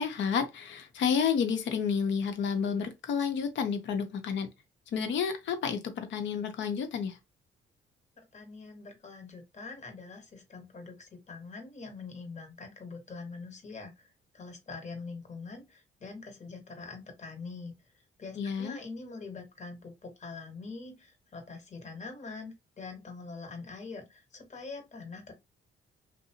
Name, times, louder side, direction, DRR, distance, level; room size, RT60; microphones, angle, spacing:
voice 1, 0.0-4.5 4.9-7.2 18.4-18.8, left 6 dB, 70° left, 0.7 m, -30 dB
voice 2, 8.3-14.1 14.3-17.7 18.2-25.3, left 4 dB, 35° left, 1.0 m, -44 dB
2.6 x 2.0 x 2.8 m
cardioid pair, 90°, 20 cm